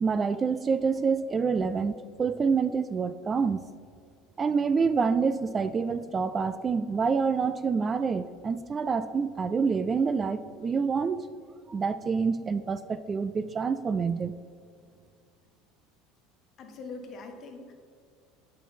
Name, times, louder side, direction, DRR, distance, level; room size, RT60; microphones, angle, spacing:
voice 1, 0.0-3.6 4.4-11.3 11.7-14.4, right 5 dB, 30° right, 12 dB, 0.3 m, -27 dB
voice 2, 16.6-17.7, left 3 dB, 45° left, 4 dB, 1.2 m, -42 dB
9.0 x 5.3 x 4.3 m, 2.1 s
figure-of-eight pair, 70°, 0 cm